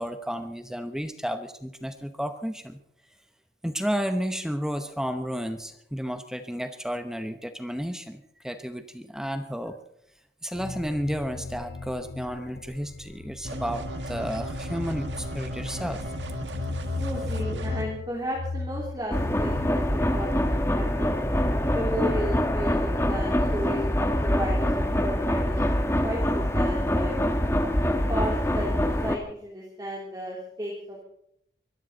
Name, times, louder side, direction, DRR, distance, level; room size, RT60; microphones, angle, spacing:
voice 1, 0.0-2.8 3.6-9.8 10.4-16.1, equal, 5° right, 8 dB, 0.8 m, -32 dB
sound 1, 10.5-19.7, left 3 dB, 60° left, 0.6 m, -36 dB
sound 2, 13.4-17.8, equal, 85° right, 2.1 m, -35 dB
voice 2, 17.0-20.5 20.7-21.1 21.7-25.6 26.0-27.1 28.1-28.7 29.0-31.0, equal, 20° right, -3 dB, 3.1 m, -34 dB
sound 3, 19.1-29.2, equal, 15° left, 1.3 m, -25 dB
24.0 x 14.0 x 4.0 m, 0.72 s
head